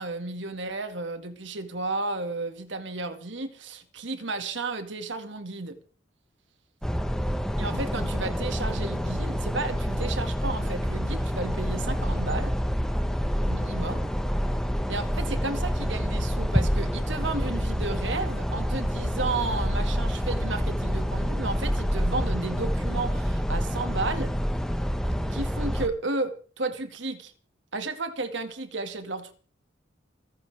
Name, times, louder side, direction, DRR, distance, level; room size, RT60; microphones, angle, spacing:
voice 1, 0.0-5.8 7.6-12.5 13.5-14.1 14.9-24.4 25.3-27.3 27.7-29.3, right 3 dB, 70° right, 2.1 m, -33 dB
sound 1, 6.8-25.9, equal, 5° left, 1.3 m, -27 dB
29.0 x 10.5 x 3.5 m
head